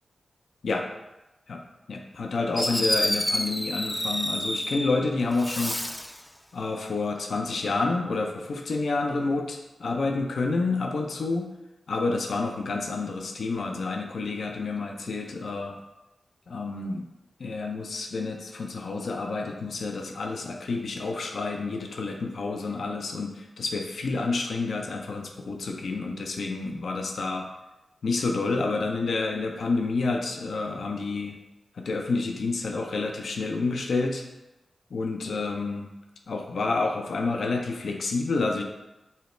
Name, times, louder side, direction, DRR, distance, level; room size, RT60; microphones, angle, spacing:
voice 1, 1.9-5.8 6.5-11.5 11.9-15.8 16.5-17.0 17.4-27.5 28.0-31.4 31.8-34.2 34.9-35.9 36.3-38.6, left 3 dB, 75° left, 2 dB, 0.4 m, -29 dB
Fireworks, 2.1-2.2 2.6-5.0 5.3-6.2, equal, 10° left, 0.4 m, -28 dB
5.5 x 2.1 x 3.1 m, 0.96 s
cardioid pair, 45°, 0 cm